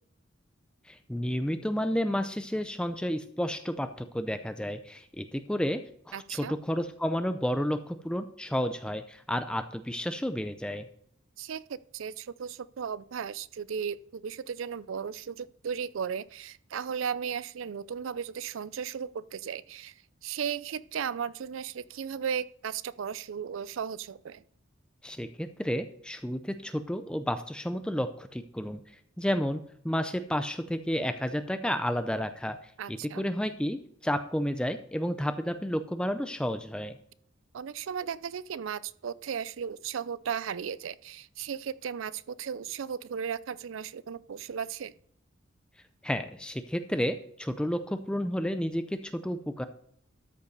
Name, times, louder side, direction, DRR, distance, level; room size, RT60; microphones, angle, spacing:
voice 1, 0.9-10.9 25.0-28.8 29.2-33.8 34.0-37.0 46.0-49.7, equal, 5° left, 9 dB, 0.4 m, -31 dB
voice 2, 6.1-6.6 11.4-19.9 20.2-24.4 32.8-33.3 37.5-44.9, right 7 dB, 75° right, 18 dB, 0.4 m, -36 dB
13.0 x 5.3 x 5.3 m, 0.64 s
head